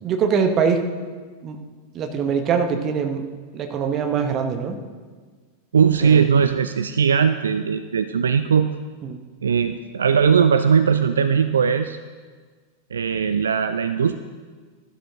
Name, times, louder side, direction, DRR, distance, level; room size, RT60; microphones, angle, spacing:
voice 1, 0.0-0.9 1.4-1.6 1.9-3.2 3.5-4.8 6.0-6.2 9.0-9.2, right 6 dB, 30° right, 6 dB, 1.0 m, -23 dB
voice 2, 5.7-8.7 9.4-12.0 12.9-14.2, right 6 dB, 70° right, 10 dB, 0.4 m, -19 dB
13.5 x 12.0 x 2.9 m, 1.5 s
figure-of-eight pair, 90°, 0 cm